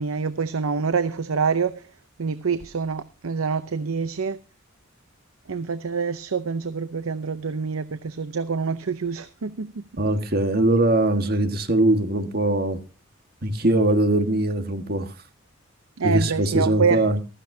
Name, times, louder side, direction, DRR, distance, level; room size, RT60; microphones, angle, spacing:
voice 1, 0.0-1.8 2.2-4.4 5.5-9.8 16.0-17.1, right 5 dB, 80° right, 0.7 m, -26 dB
voice 2, 10.0-12.8 13.4-15.1 16.0-17.2, right 1 dB, 45° right, 1.6 m, -21 dB
15.5 x 13.5 x 2.7 m
head